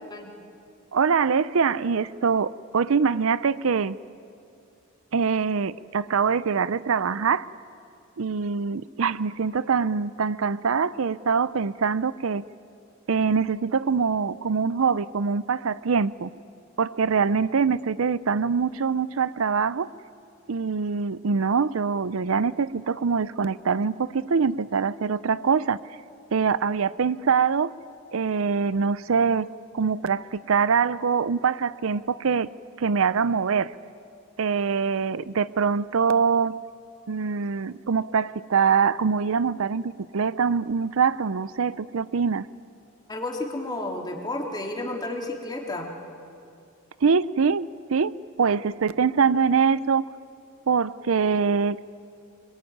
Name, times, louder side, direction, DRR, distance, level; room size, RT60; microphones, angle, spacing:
voice 1, 0.9-4.0 5.1-7.5 8.2-12.4 13.1-16.3 16.8-19.9 20.5-25.8 26.3-27.7 28.1-29.5 29.7-32.5 32.8-33.7 34.4-36.6 37.1-42.5 47.0-50.0 50.7-51.8, right 5 dB, 80° right, 17 dB, 0.5 m, -24 dB
voice 2, 43.1-45.9, left 2 dB, 20° left, 1 dB, 2.9 m, -31 dB
26.0 x 22.0 x 9.4 m, 2.5 s
head